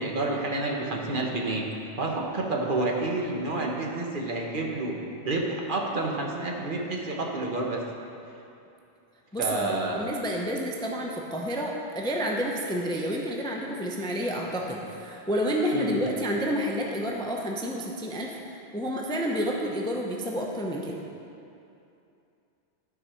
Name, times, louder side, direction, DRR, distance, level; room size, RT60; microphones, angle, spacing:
voice 1, 0.0-1.7 2.0-5.0 5.2-7.9 9.4-10.1 15.7-16.0, right 2 dB, 50° right, 0 dB, 1.1 m, -29 dB
voice 2, 9.3-18.4 18.7-21.0, equal, 5° left, -1 dB, 0.5 m, -29 dB
12.0 x 4.8 x 5.6 m, 2.7 s
omnidirectional pair, 1.2 m